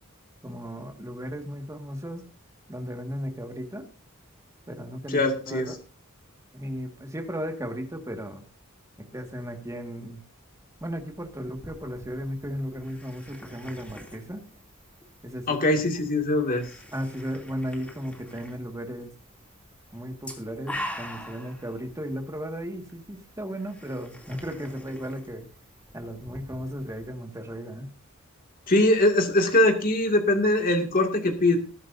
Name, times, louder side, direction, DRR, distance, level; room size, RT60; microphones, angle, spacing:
voice 1, 0.4-2.3 2.7-3.9 4.7-5.8 6.5-8.4 9.0-10.2 10.8-14.5 15.2-15.6 16.9-19.1 19.9-25.5 25.9-27.9, equal, 15° right, 4 dB, 1.9 m, -35 dB
voice 2, 5.1-5.7 15.5-16.6 28.7-31.6, left 1 dB, 40° left, 3 dB, 2.3 m, -22 dB
sound 1, 10.8-27.1, equal, 5° left, 2.9 m, -45 dB
20.5 x 11.0 x 2.7 m, 0.37 s
head